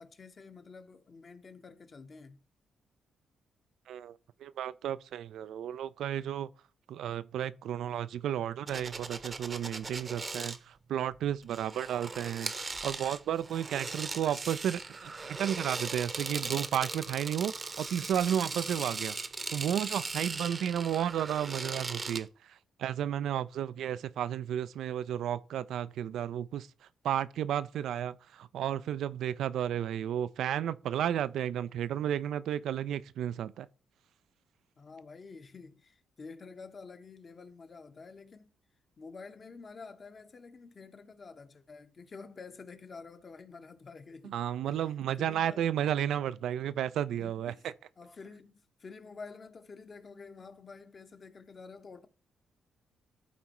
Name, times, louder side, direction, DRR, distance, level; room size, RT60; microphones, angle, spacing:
voice 1, 0.0-2.4 34.8-38.5 39.0-44.4 44.7-44.8 45.2-45.7 47.2-47.7 48.0-52.1, left 4 dB, 45° left, 1.1 m, -49 dB
voice 2, 4.4-6.5 6.9-19.2 19.5-22.3 22.8-26.7 27.0-33.7 44.2-47.5, right 10 dB, 75° right, 0.3 m, -33 dB
sound 1, 8.7-10.6 11.4-22.3, right 3 dB, 35° right, 0.8 m, -39 dB
12.5 x 4.3 x 3.0 m
supercardioid pair, 60°, 0 cm